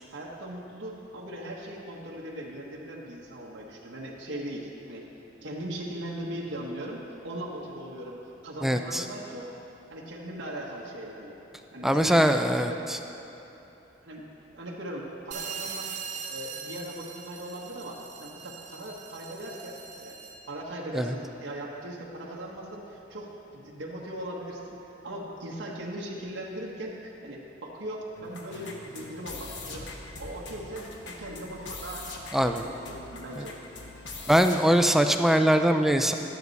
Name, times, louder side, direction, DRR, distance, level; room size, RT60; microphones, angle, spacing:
voice 1, 0.1-5.0 5.4-9.5 9.9-11.4 11.7-12.8 13.2-13.3 14.0-14.3 14.5-15.9 16.3-20.2 20.5-29.9 30.2-32.1 32.4-33.6, right 1 dB, 85° right, -3 dB, 1.2 m, -39 dB
voice 2, 8.6-9.0 11.8-12.7 20.9-21.1 32.3-32.6 34.3-36.1, equal, ahead, 6 dB, 0.3 m, -22 dB
sound 1, 15.3-20.5, right 6 dB, 40° right, 0.7 m, -41 dB
sound 2, 28.2-34.7, left 3 dB, 70° left, 1.0 m, -42 dB
12.0 x 9.4 x 4.0 m, 3.0 s
head